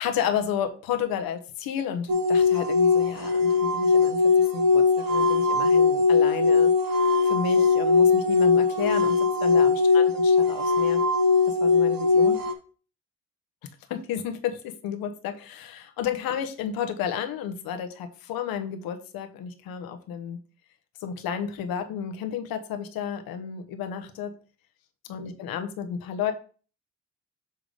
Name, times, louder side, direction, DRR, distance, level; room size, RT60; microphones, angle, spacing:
voice 1, 0.0-4.2 4.5-4.8 5.1-6.7 7.2-11.0 11.5-12.4 13.9-20.4 21.0-24.3 25.1-26.3, left 8 dB, 75° left, 8 dB, 1.0 m, -32 dB
sound 1, 2.1-12.5, left 4 dB, 70° right, 1.1 m, -20 dB
6.8 x 3.7 x 4.8 m, 0.39 s
hypercardioid pair, 45°, 35 cm